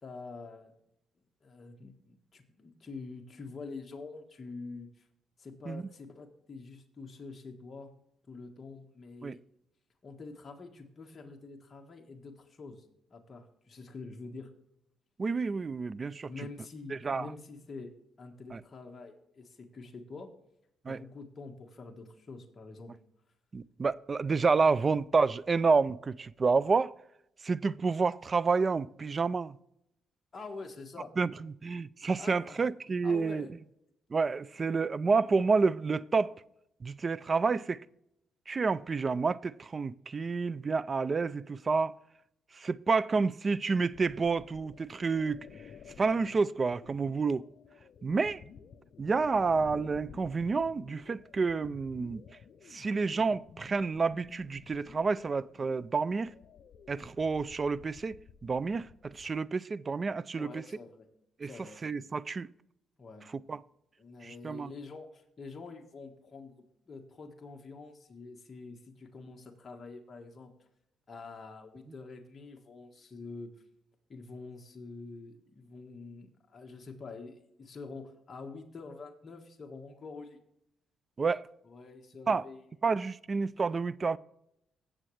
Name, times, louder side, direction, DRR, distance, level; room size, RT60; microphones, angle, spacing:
voice 1, 0.0-0.7 1.4-5.1 5.4-7.9 8.3-9.4 10.0-12.8 13.1-14.5 16.3-17.9 18.2-20.3 20.9-22.9 30.3-31.1 32.2-32.6 33.0-33.5 60.4-61.1 61.4-61.8 63.0-63.3 64.0-66.5 66.9-70.5 71.1-73.5 74.1-80.4 81.7-82.6, left 3 dB, 35° left, 1.5 m, -46 dB
voice 2, 15.2-16.5 16.9-17.3 18.5-18.6 20.8-21.0 23.5-26.9 27.4-29.6 31.2-33.5 34.1-36.3 36.8-37.9 38.5-42.0 42.5-45.6 46.0-47.5 48.0-48.4 49.0-52.3 52.7-56.3 56.9-60.6 61.4-61.5 61.8-62.5 63.3-63.6 64.2-64.7 81.2-81.5 82.3-82.4 82.8-84.2, right 4 dB, 35° right, 0.3 m, -29 dB
sound 1, 43.9-59.4, left 7 dB, 60° left, 0.6 m, -53 dB
17.0 x 7.3 x 3.3 m
cardioid pair, 90°, 0 cm